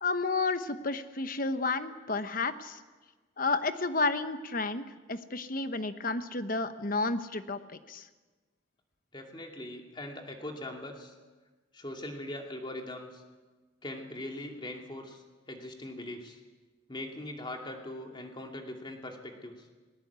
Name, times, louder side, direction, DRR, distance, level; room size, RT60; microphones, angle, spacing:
voice 1, 0.0-2.8 3.4-8.1, left 3 dB, 45° left, 10 dB, 1.0 m, -31 dB
voice 2, 9.1-11.1 11.7-13.2 13.8-16.4 16.9-19.6, left 1 dB, 25° left, 2 dB, 2.6 m, -41 dB
19.5 x 19.0 x 8.2 m, 1.3 s
head